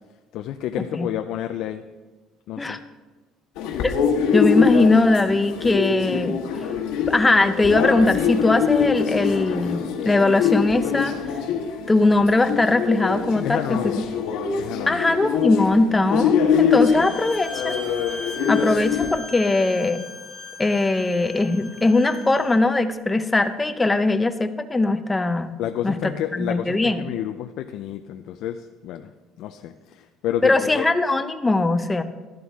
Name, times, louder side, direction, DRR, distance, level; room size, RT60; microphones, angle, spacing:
voice 1, 0.3-1.8 2.5-2.8 13.4-14.1 14.6-15.0 25.6-29.1 29.4-30.9, left 11 dB, 60° left, 7 dB, 0.4 m, -30 dB
sound 1, 3.6-19.1, left 7 dB, 90° left, 1.3 m, -24 dB
voice 2, 3.8-6.4 7.1-11.1 11.9-13.8 14.9-17.8 18.5-20.0 20.6-25.6 25.8-27.1 30.4-32.0, left 2 dB, 10° left, 9 dB, 0.5 m, -20 dB
Bowed string instrument, 16.8-22.6, left 3 dB, 25° right, 2.6 m, -37 dB
12.0 x 11.0 x 3.5 m, 1.2 s
cardioid pair, 165°, 0 cm